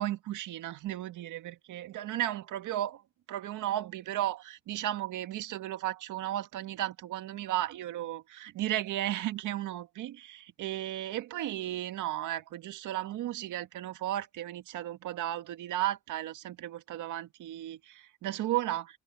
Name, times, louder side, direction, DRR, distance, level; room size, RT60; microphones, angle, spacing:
voice 1, 0.0-3.0 3.3-19.0, right 13 dB, 85° right, 1.9 m, -34 dB
cardioid pair, 90°, 30 cm